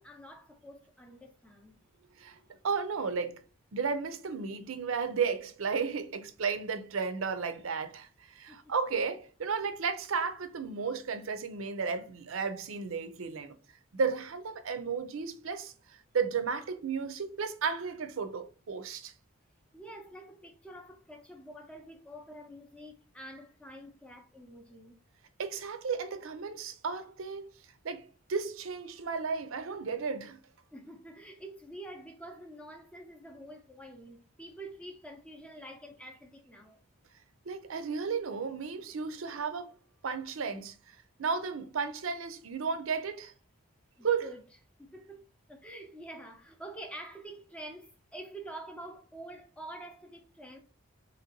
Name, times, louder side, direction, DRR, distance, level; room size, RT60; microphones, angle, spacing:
voice 1, 0.0-1.8 8.5-8.6 19.7-24.9 30.7-36.8 44.0-44.4 44.8-50.6, right 1 dB, 5° left, 0.5 m, -47 dB
voice 2, 2.6-3.4 3.7-13.6 13.9-19.1 25.4-27.5 27.8-30.4 37.5-39.8 40.0-43.3 44.0-44.3, right 5 dB, 80° right, 0.5 m, -34 dB
3.9 x 3.0 x 2.8 m
head